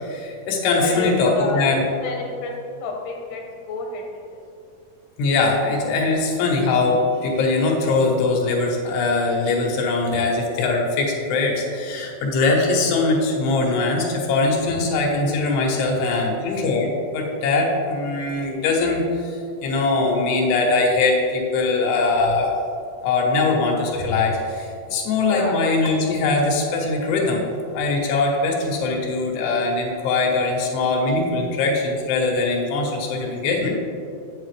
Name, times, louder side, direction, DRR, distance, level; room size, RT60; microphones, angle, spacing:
voice 1, 0.0-1.8 5.2-22.5 23.0-27.4 27.7-33.8, left 3 dB, 90° left, -1 dB, 3.2 m, -21 dB
voice 2, 0.7-1.8 2.0-4.0 25.3-25.5, left 3 dB, 70° left, 0 dB, 2.2 m, -30 dB
8.4 x 7.3 x 3.2 m, 2.4 s
omnidirectional pair, 4.6 m